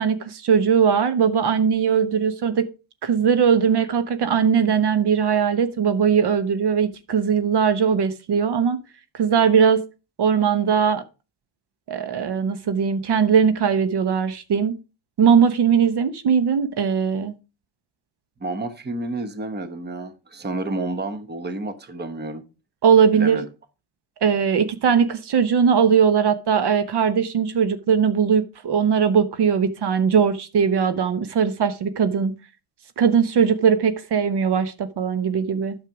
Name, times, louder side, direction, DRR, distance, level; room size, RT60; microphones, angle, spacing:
voice 1, 0.0-2.7 3.0-8.8 9.1-9.8 10.2-11.0 11.9-14.7 15.2-17.3 22.8-23.4 24.2-32.3 33.0-35.8, right 7 dB, 55° right, 1.1 m, -20 dB
voice 2, 18.4-22.4 23.1-23.4, right 2 dB, 20° right, 1.1 m, -30 dB
9.1 x 6.6 x 4.8 m
cardioid pair, 115°, 47 cm